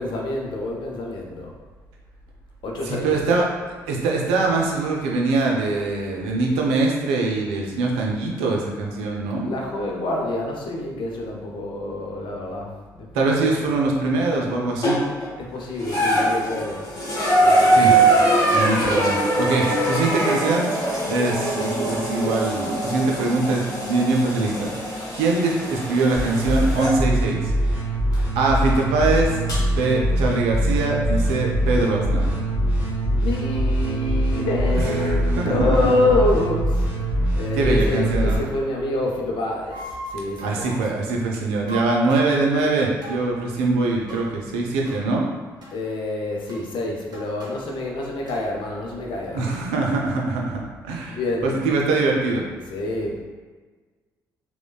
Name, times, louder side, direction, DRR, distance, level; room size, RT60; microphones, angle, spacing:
voice 1, 0.0-1.5 2.6-3.4 9.4-12.7 13.1-13.7 15.4-16.9 17.4-18.2 33.2-36.9 37.4-40.9 45.7-49.5 50.6-50.7 51.0-51.6 52.7-53.2, left 2 dB, 55° left, 0 dB, 0.5 m, -27 dB
voice 2, 2.8-9.5 13.1-15.0 17.7-17.9 18.5-20.7 21.1-27.5 28.3-29.4 29.7-32.3 34.7-35.8 37.6-38.4 40.4-45.2 49.3-52.4, right 3 dB, 75° right, -1 dB, 0.4 m, -23 dB
sound 1, 14.8-15.3 15.8-27.0 28.1-28.2 29.5-29.6, right 1 dB, 40° left, 1.1 m, -22 dB
sound 2, 26.2-38.4, right 1 dB, 20° right, 1.4 m, -23 dB
sound 3, 39.7-40.6 41.7-42.4 43.0-43.2 44.1-44.3 44.8-45.0 45.6-45.7 46.5-46.6 47.1-47.8 48.2-48.4, right 1 dB, 45° right, 0.8 m, -37 dB
3.1 x 2.1 x 2.3 m, 1.4 s
hypercardioid pair, 45°, 10 cm